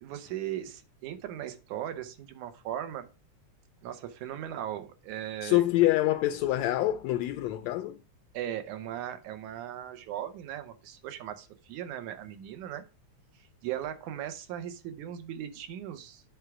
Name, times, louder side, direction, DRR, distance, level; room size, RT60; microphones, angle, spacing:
voice 1, 0.0-3.1 3.8-5.6 8.3-12.9 13.6-16.2, right 11 dB, 80° right, 2.3 m, -38 dB
voice 2, 5.4-8.0, left 15 dB, 80° left, 1.6 m, -26 dB
8.0 x 3.5 x 6.0 m
omnidirectional pair, 3.4 m